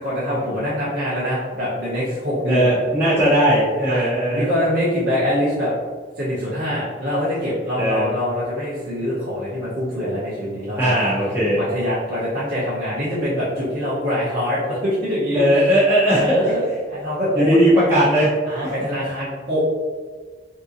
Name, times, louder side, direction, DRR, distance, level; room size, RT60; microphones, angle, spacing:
voice 1, 0.0-2.7 3.9-5.7 6.2-11.0 11.5-15.4 16.2-17.6 18.5-19.6, equal, 50° right, -11 dB, 0.8 m, -24 dB
voice 2, 2.5-4.5 7.8-8.2 10.8-11.7 15.3-16.3 17.3-18.3 18.6-18.7, equal, 10° right, -13 dB, 0.7 m, -18 dB
3.6 x 2.8 x 2.5 m, 1.5 s
head